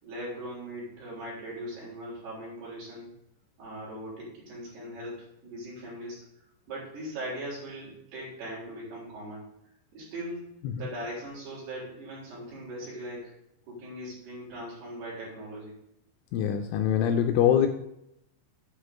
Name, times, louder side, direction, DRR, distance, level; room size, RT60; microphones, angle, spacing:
voice 1, 0.0-3.1 3.6-6.2 6.7-9.4 9.9-13.3 13.7-15.8, right 1 dB, 55° right, -5 dB, 5.5 m, -40 dB
voice 2, 16.3-17.7, left 9 dB, 85° left, 6 dB, 2.9 m, -23 dB
9.1 x 4.9 x 6.6 m, 0.79 s
omnidirectional pair, 5.9 m